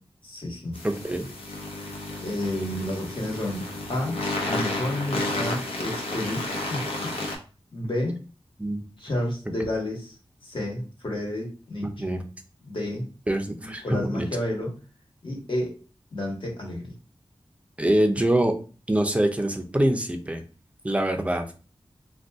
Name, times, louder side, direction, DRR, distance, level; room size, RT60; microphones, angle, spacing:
voice 1, 0.2-0.9 2.2-3.6 3.9-4.2 4.4-7.3 7.7-8.2 9.0-10.2 10.4-12.1 12.6-13.1 13.6-14.7 15.2-15.8 16.1-16.9, left 1 dB, 60° left, -1 dB, 1.2 m, -31 dB
sound 1, 0.7-7.4, left 2 dB, 85° left, 0.8 m, -32 dB
voice 2, 0.8-1.3 8.6-8.8 11.8-12.2 13.3-14.3 17.8-18.5 18.9-20.4 20.8-21.4, right 1 dB, 15° right, 5 dB, 0.5 m, -24 dB
2.5 x 2.3 x 3.4 m, 0.36 s
wide cardioid pair, 85°, 10 cm